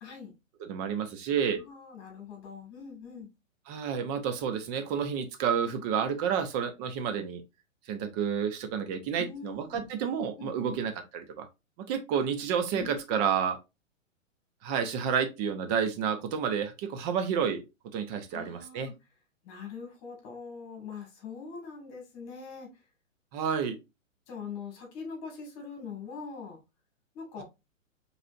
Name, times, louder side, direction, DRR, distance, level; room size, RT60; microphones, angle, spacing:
voice 1, 0.0-0.3 1.5-3.3 9.2-9.9 10.4-10.8 12.7-13.2 18.3-18.9 19.4-22.7 24.3-26.6 27.1-27.4, left 5 dB, 35° left, 2.1 m, -42 dB
voice 2, 0.6-1.6 3.7-7.4 7.9-11.5 11.8-13.6 14.6-17.6 17.9-18.9 23.3-23.8, right 7 dB, 30° right, 0.8 m, -30 dB
4.9 x 3.3 x 2.5 m
hypercardioid pair, 120°, 39 cm